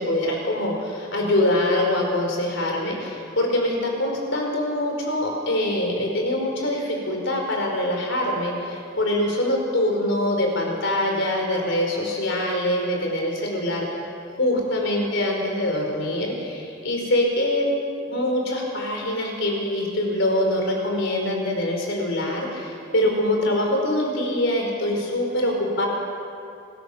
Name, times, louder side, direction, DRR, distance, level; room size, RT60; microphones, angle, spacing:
voice 1, 0.0-13.9 14.3-17.7 18.1-25.9, left 1 dB, 65° left, 1 dB, 4.7 m, -24 dB
26.0 x 16.0 x 6.8 m, 2.7 s
head